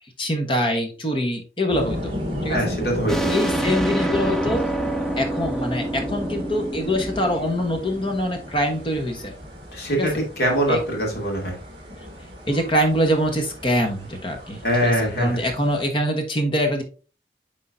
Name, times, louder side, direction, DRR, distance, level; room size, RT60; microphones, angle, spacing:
voice 1, 0.2-2.1 2.4-2.6 3.3-4.7 5.2-9.3 9.9-10.1 10.7-10.8 12.5-16.8, equal, 30° left, 4 dB, 1.1 m, -24 dB
sound 1, 1.7-15.8, left 1 dB, 30° right, 1.7 m, -34 dB
voice 2, 2.5-3.3 9.7-11.5 14.6-15.4, equal, 65° left, 0 dB, 2.3 m, -23 dB
sound 2, 3.1-8.4, right 2 dB, ahead, 0.5 m, -27 dB
9.6 x 3.7 x 2.6 m, 0.36 s
head